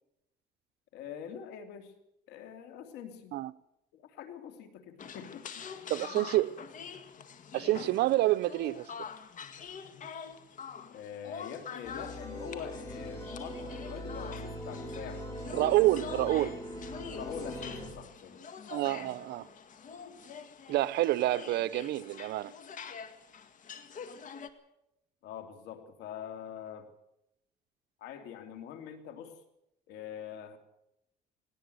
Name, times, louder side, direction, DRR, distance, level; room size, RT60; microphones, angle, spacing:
voice 1, 0.9-2.0 2.3-3.4 3.9-5.7 6.1-6.3 10.9-15.2 17.1-18.4 25.2-26.9 28.0-29.4 29.9-30.6, left 8 dB, 85° left, 2.9 m, -44 dB
sound 1, 5.0-24.5, left 6 dB, 50° left, 1.9 m, -45 dB
voice 2, 5.9-6.5 7.5-8.9 15.5-16.6 18.7-19.5 20.7-22.5, right 16 dB, 75° right, 0.8 m, -28 dB
sound 2, 11.8-17.9, equal, 20° left, 6.9 m, -41 dB
19.0 x 18.5 x 7.9 m
cardioid pair, 110°, 17 cm